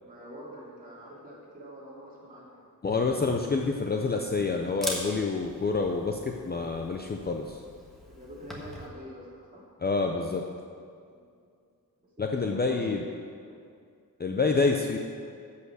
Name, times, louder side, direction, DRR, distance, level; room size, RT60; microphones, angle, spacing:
voice 1, 0.0-2.7 8.1-9.6 11.1-11.4 12.0-12.1 12.4-13.6, equal, 25° right, -6 dB, 2.8 m, -46 dB
voice 2, 2.8-6.2 6.4-7.6 9.8-10.4 12.2-13.0 14.2-15.0, left 4 dB, 30° left, 2 dB, 0.6 m, -27 dB
Camera, 3.0-8.9, equal, ahead, 1.4 m, -42 dB
14.5 x 5.7 x 6.3 m, 2.3 s
wide cardioid pair, 175°, 35 cm